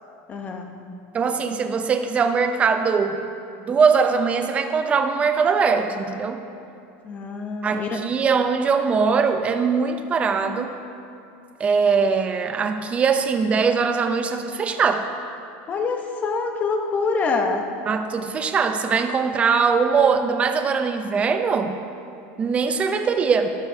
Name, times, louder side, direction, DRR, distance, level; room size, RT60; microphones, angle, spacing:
voice 1, 0.3-0.7 7.0-8.0 15.7-17.6, left 4 dB, 25° left, 4 dB, 0.9 m, -25 dB
voice 2, 1.1-3.2 3.6-6.4 7.6-10.8 11.6-15.0 17.9-21.7 22.4-23.5, right 5 dB, 20° right, 7 dB, 0.6 m, -21 dB
12.0 x 11.5 x 2.8 m, 2.7 s
supercardioid pair, 150°, 6 cm